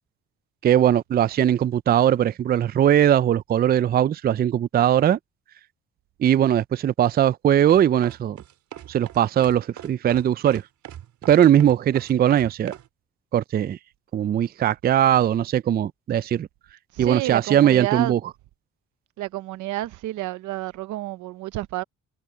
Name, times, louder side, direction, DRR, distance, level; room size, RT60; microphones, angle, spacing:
voice 1, 0.6-5.2 6.2-8.4 8.9-10.6 11.3-12.7 13.3-13.8 14.1-16.5 17.0-18.2, right 10 dB, 35° right, 0.4 m, -20 dB
sound 1, 7.7-12.9, right 11 dB, 75° right, 3.7 m, -41 dB
voice 2, 16.9-18.1 19.2-21.8, right 16 dB, 90° right, 0.8 m, -30 dB
cardioid pair, 105°, 29 cm